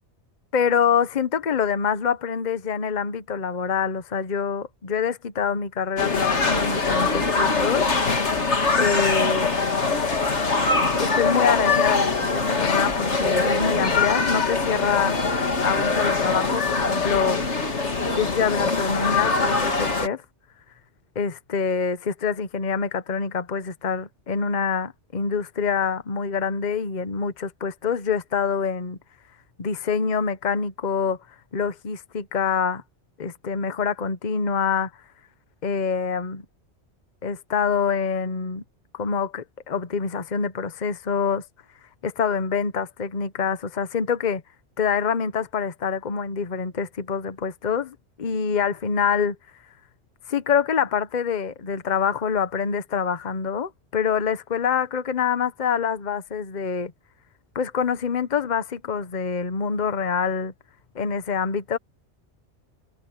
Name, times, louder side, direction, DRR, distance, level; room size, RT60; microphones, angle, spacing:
voice 1, 0.5-7.9 8.8-9.5 11.0-15.2 15.6-17.4 18.1-20.2 21.1-29.0 29.6-31.2 31.5-32.8 33.2-34.9 35.6-36.4 37.2-38.6 38.9-41.4 42.0-44.4 44.8-49.4 50.3-56.9 57.5-60.5 60.9-61.8, left 6 dB, 40° left, 1.1 m, -25 dB
sound 1, 6.0-20.1, left 4 dB, 75° left, 2.5 m, -23 dB
omnidirectional pair, 1.2 m